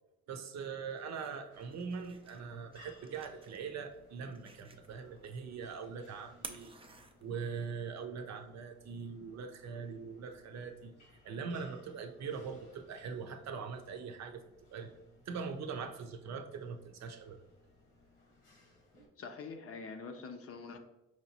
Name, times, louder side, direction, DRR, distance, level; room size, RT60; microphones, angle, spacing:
voice 1, 0.3-6.7 7.2-10.9 11.2-14.4 14.7-14.9 15.3-17.4, right 5 dB, 60° right, 6 dB, 0.6 m, -42 dB
sound 1, 0.7-7.7, right 4 dB, 20° right, 0.4 m, -54 dB
sound 2, 1.5-19.1, left 2 dB, 85° left, 1.2 m, -64 dB
voice 2, 19.2-20.8, left 4 dB, 50° left, 6 dB, 0.6 m, -45 dB
4.8 x 2.8 x 2.8 m, 0.93 s
cardioid pair, 90°, 30 cm